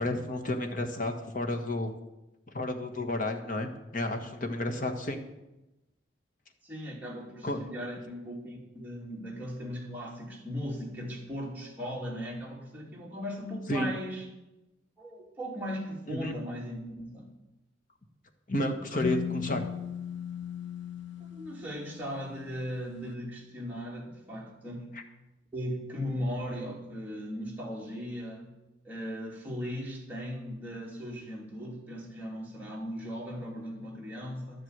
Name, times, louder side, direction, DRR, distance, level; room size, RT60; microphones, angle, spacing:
voice 1, 0.0-1.9 2.5-5.2 7.4-7.6 13.7-13.9 16.1-16.3 18.5-19.7, left 1 dB, 45° left, 5 dB, 1.5 m, -31 dB
voice 2, 6.6-14.3 15.0-17.3 21.2-24.9 25.5-28.5 28.8-34.6, equal, 10° right, -3 dB, 2.8 m, -38 dB
sound 1, 19.0-22.8, left 8 dB, 80° left, 0.8 m, -38 dB
12.0 x 7.8 x 8.1 m, 0.97 s
head